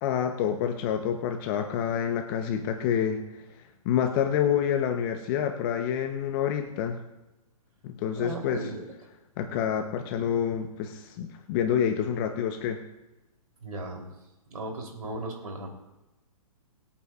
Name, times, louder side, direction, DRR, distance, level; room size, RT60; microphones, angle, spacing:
voice 1, 0.0-3.4 3.8-7.0 7.8-8.6 9.4-12.8, left 8 dB, 35° left, 5 dB, 1.0 m, -28 dB
voice 2, 8.2-8.8 13.6-14.1 14.5-15.7, right 2 dB, 80° right, 1 dB, 3.6 m, -36 dB
25.0 x 8.6 x 2.5 m, 1.0 s
hypercardioid pair, 125°, 19 cm